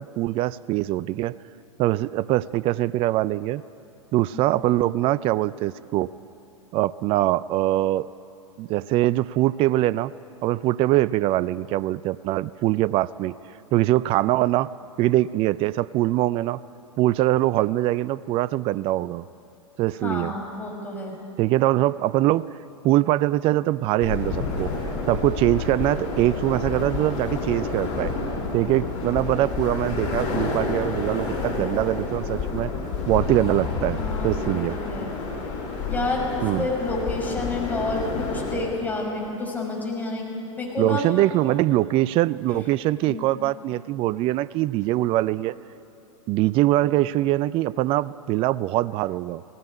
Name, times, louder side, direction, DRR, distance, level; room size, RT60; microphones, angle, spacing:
voice 1, 0.0-1.4 1.8-3.6 4.1-6.1 6.7-8.1 8.6-10.1 10.4-13.4 13.7-14.7 15.0-16.6 17.0-19.2 19.8-20.3 21.4-22.5 22.8-24.7 25.1-28.1 28.5-32.7 33.1-34.8 36.4-36.7 40.8-45.6 46.3-49.6, right 15 dB, 35° right, 19 dB, 0.4 m, -23 dB
voice 2, 20.0-21.2 33.9-35.2 35.9-41.0 42.5-42.6 43.1-43.3, left 2 dB, 10° left, -2 dB, 5.7 m, -30 dB
sound 1, 24.0-38.6, left 4 dB, 45° left, 6.8 m, -29 dB
18.0 x 17.0 x 10.0 m, 2.8 s
hypercardioid pair, 100°, 17 cm